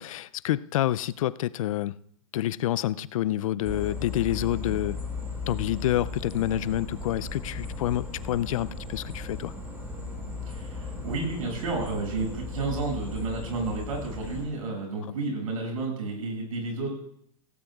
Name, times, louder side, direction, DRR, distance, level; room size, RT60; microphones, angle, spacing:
voice 1, 0.0-2.0 2.3-5.0 5.5-9.5, left 13 dB, 70° left, 0.5 m, -28 dB
sound 1, 3.6-14.4, left 3 dB, 15° right, 4.4 m, -36 dB
voice 2, 10.5-16.9, right 3 dB, 85° right, 6.9 m, -31 dB
17.5 x 17.0 x 2.4 m
hypercardioid pair, 135°, 18 cm